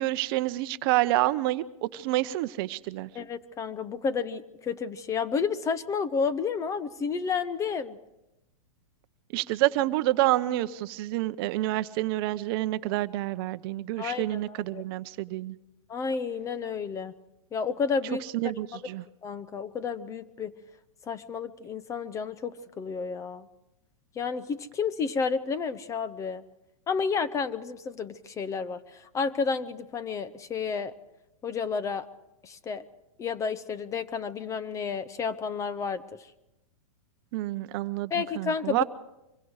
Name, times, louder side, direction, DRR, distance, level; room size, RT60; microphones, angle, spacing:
voice 1, 0.0-3.1 9.3-15.6 18.3-19.0 37.3-38.8, right 16 dB, 45° right, 13 dB, 0.8 m, -28 dB
voice 2, 3.1-8.0 14.0-14.8 15.9-17.1 17.5-18.2 18.7-18.8 19.2-20.5 21.1-23.5 24.2-26.4 26.9-30.9 31.4-32.1 32.4-32.8 33.2-36.0 38.1-38.8, left 5 dB, 15° left, 15 dB, 0.8 m, -31 dB
25.0 x 23.0 x 4.9 m, 0.91 s
hypercardioid pair, 140°, 18 cm